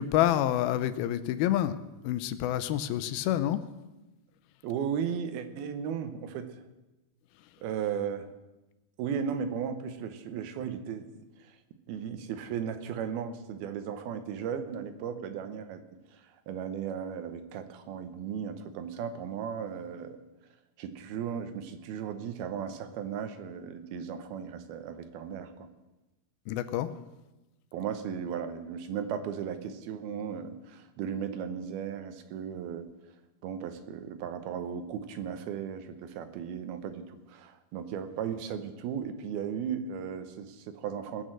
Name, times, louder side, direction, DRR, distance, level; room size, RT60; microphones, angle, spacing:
voice 1, 0.0-1.8 2.0-3.6 26.5-26.9, left 12 dB, 90° left, 12 dB, 2.6 m, -28 dB
voice 2, 4.6-6.5 7.6-8.3 9.0-11.5 11.9-15.8 16.1-20.2 20.8-25.7 27.7-32.9 33.4-41.2, right 7 dB, 85° right, 9 dB, 2.9 m, -36 dB
19.0 x 6.5 x 7.6 m, 1.0 s
omnidirectional pair, 4.3 m